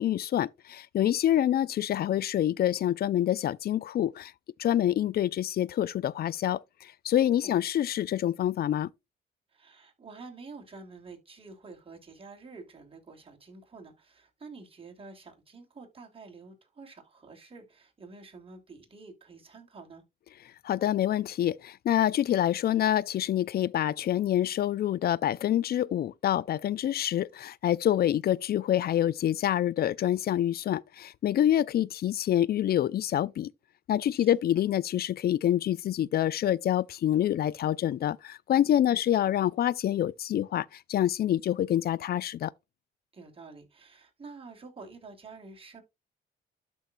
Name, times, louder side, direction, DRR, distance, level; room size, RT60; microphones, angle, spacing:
voice 1, 0.0-4.3 4.6-8.9 20.6-33.5 33.9-42.5, left 11 dB, 50° left, 0.4 m, -26 dB
voice 2, 9.5-20.0 34.1-34.3 38.9-39.0 43.1-45.8, right 4 dB, 30° right, 3.3 m, -48 dB
12.0 x 4.6 x 2.5 m
cardioid pair, 90°, 20 cm